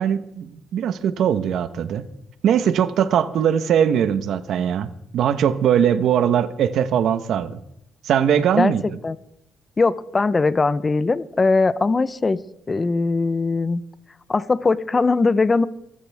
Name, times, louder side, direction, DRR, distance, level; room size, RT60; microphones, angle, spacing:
voice 1, 0.0-2.1 2.4-7.6 8.0-8.8, right 9 dB, 75° right, 12 dB, 1.1 m, -20 dB
voice 2, 9.8-12.4 12.7-13.8 14.3-15.7, left 3 dB, 30° left, 16 dB, 0.8 m, -20 dB
25.0 x 14.0 x 3.5 m, 0.78 s
cardioid pair, 90°, 0 cm